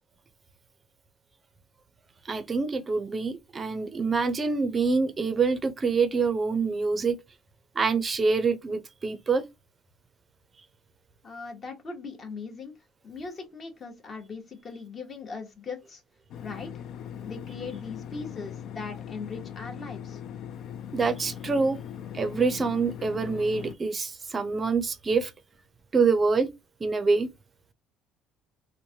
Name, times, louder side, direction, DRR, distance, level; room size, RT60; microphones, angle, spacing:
voice 1, 2.3-7.2 7.8-9.4 20.9-21.8 22.1-25.3 25.9-26.5 26.8-27.3, right 4 dB, 25° right, 0.5 m, -26 dB
voice 2, 11.2-12.7 13.0-16.0 16.4-16.7 17.2-20.2, left 4 dB, 35° left, 0.9 m, -39 dB
sound 1, 16.3-23.7, left 9 dB, 60° left, 0.3 m, -40 dB
3.0 x 2.1 x 2.7 m
cardioid pair, 130°, 0 cm